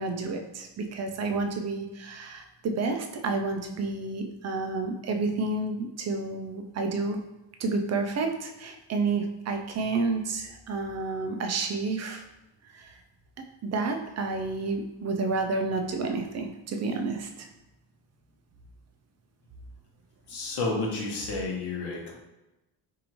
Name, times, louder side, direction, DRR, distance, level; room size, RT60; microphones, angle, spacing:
voice 1, 0.0-7.2 7.6-12.2 12.7-12.9 13.6-17.5, right 3 dB, 40° right, 4 dB, 0.4 m, -30 dB
voice 2, 20.3-22.1, left 3 dB, 60° left, -1 dB, 1.1 m, -31 dB
4.8 x 2.6 x 3.0 m, 1.0 s
cardioid pair, 175°, 44 cm